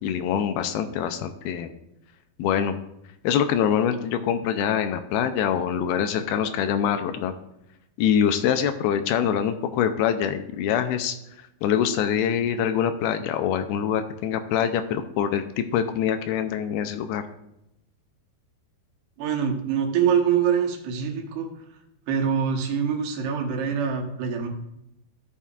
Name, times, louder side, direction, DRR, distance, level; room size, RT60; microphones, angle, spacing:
voice 1, 0.0-1.7 2.4-2.8 3.2-7.3 8.0-11.2 11.6-17.2, left 8 dB, 85° left, 8 dB, 2.4 m, -24 dB
voice 2, 19.2-21.5 22.1-24.5, right 7 dB, 85° right, 2 dB, 3.2 m, -24 dB
13.0 x 7.0 x 2.4 m, 0.84 s
omnidirectional pair, 4.6 m